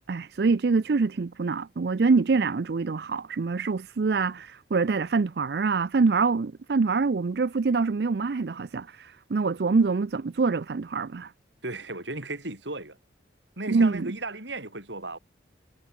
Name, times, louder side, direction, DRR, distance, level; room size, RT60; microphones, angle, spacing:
voice 1, 0.1-11.3 13.7-14.1, right 4 dB, 60° right, 0.4 m, -25 dB
voice 2, 11.6-13.0 13.6-15.2, right 2 dB, 80° right, 7.5 m, -35 dB
head